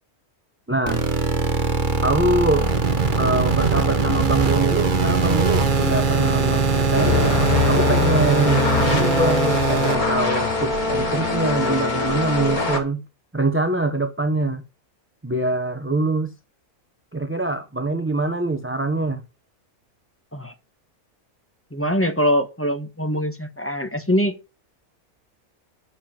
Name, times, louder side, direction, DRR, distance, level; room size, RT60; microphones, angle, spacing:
voice 1, 0.7-1.1 2.0-2.7 3.2-13.0 13.3-14.6 15.2-16.3 17.1-19.2, right 2 dB, 10° right, 0.7 m, -24 dB
sound 1, 0.9-9.9, right 4 dB, 35° right, 1.1 m, -21 dB
sound 2, 6.9-12.8, left 4 dB, 75° left, 3.3 m, -22 dB
voice 2, 21.7-24.4, equal, 10° left, 1.3 m, -23 dB
9.8 x 7.1 x 7.3 m
omnidirectional pair, 1.6 m